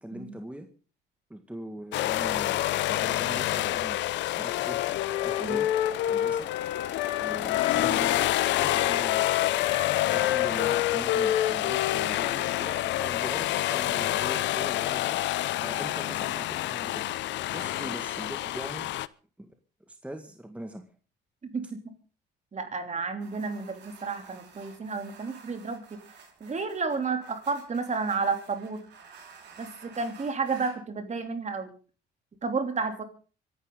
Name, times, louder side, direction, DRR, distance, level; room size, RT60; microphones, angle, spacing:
voice 1, 0.0-0.7 1.3-4.0 4.4-4.8 5.2-5.7 6.1-6.5 7.2-9.7 10.1-15.3 15.6-17.0 17.3-18.9 19.9-20.8, right 1 dB, 5° right, 5 dB, 2.0 m, -41 dB
sound 1, 1.9-19.1, left 15 dB, 70° left, 0.6 m, -28 dB
Wind instrument woodwind instrument, 4.5-8.3 8.5-12.6, left 12 dB, 85° left, 1.6 m, -29 dB
voice 2, 21.4-21.8 22.5-26.0 26.4-28.8 29.6-31.7 32.4-33.0, right 4 dB, 35° right, 7 dB, 3.3 m, -31 dB
sound 2, 23.2-30.8, right 6 dB, 65° right, 5.0 m, -52 dB
25.0 x 11.5 x 3.9 m, 0.38 s
supercardioid pair, 75°, 20 cm